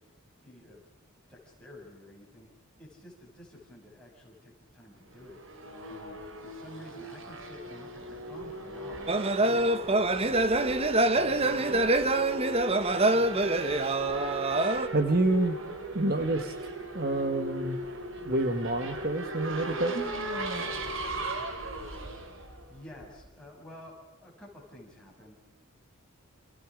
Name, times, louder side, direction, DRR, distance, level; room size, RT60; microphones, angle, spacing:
voice 1, 0.4-0.8 1.3-2.5 2.8-5.4 5.9-9.7 10.1-10.4 11.4-13.7 22.7-23.9 24.2-25.4, left 1 dB, 5° left, -4 dB, 7.2 m, -50 dB
Race car auto racing / Accelerating revving vroom, 5.1-23.3, right 1 dB, 60° right, 3.0 m, -38 dB
sound 1, 9.1-14.9, right 2 dB, 25° right, 0.9 m, -25 dB
voice 2, 14.9-15.6 15.9-16.5 16.9-17.8 18.2-20.0, right 2 dB, 45° right, 8 dB, 1.4 m, -28 dB
29.5 x 27.5 x 5.0 m, 1.1 s
head